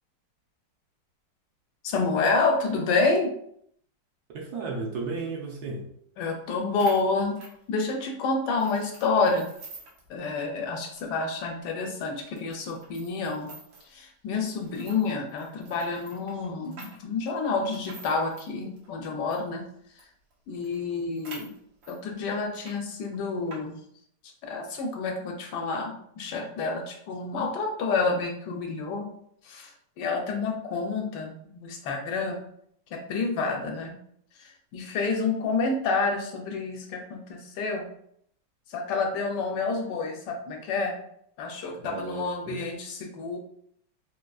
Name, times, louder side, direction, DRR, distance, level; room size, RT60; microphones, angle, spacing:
voice 1, 1.8-3.3 6.2-7.4 7.7-9.5 10.1-13.5 13.9-19.7 20.5-21.5 21.9-23.8 24.4-29.1 29.4-32.4 32.9-34.0 34.7-37.9 38.7-41.0 41.4-43.4, left 4 dB, 75° left, 2 dB, 1.2 m, -29 dB
voice 2, 4.3-5.9 41.8-42.6, right 4 dB, 70° right, -2 dB, 1.1 m, -34 dB
sound 1, 6.5-6.6 6.8-8.1 8.6-10.1 10.4-10.5 10.9-11.0 11.6-11.7 12.4-13.9 14.5-19.5 20.0-20.1 20.3-20.4 20.6-22.0 22.4-22.8 23.0-23.6, right 3 dB, 85° right, 1.5 m, -47 dB
3.8 x 2.4 x 2.3 m, 0.68 s
omnidirectional pair, 1.9 m